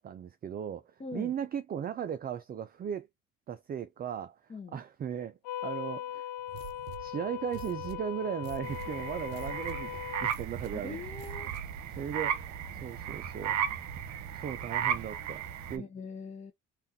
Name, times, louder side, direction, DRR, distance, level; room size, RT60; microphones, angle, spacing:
voice 1, 0.0-3.1 3.5-6.3 7.0-11.0 11.4-11.5 12.0-12.4 12.7-13.6 14.3-15.4 15.7-15.9, right 8 dB, 30° right, 0.4 m, -37 dB
voice 2, 1.0-1.3 4.5-4.8 10.7-11.5 15.7-16.5, left 4 dB, 20° left, 0.7 m, -42 dB
sound 1, 5.4-10.3, left 11 dB, 85° left, 0.5 m, -39 dB
sound 2, 6.5-11.9, right 10 dB, 80° right, 0.6 m, -46 dB
sound 3, 8.6-15.8, right 8 dB, 60° right, 0.9 m, -35 dB
3.5 x 2.5 x 2.7 m
supercardioid pair, 95°, 32 cm